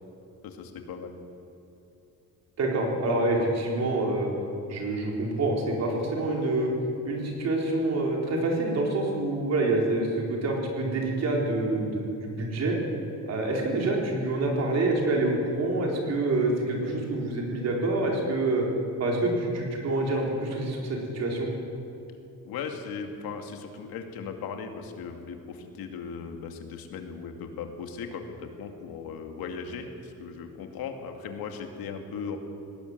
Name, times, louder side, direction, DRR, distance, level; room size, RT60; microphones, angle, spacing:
voice 1, 0.4-1.2 22.4-32.4, left 6 dB, 85° left, 5 dB, 2.4 m, -38 dB
voice 2, 2.6-4.3 4.7-6.7 7.0-12.8 13.3-18.6 19.0-21.5, right 2 dB, 45° right, 0 dB, 4.1 m, -27 dB
19.5 x 17.0 x 8.0 m, 2.8 s
cardioid pair, 170°, 35 cm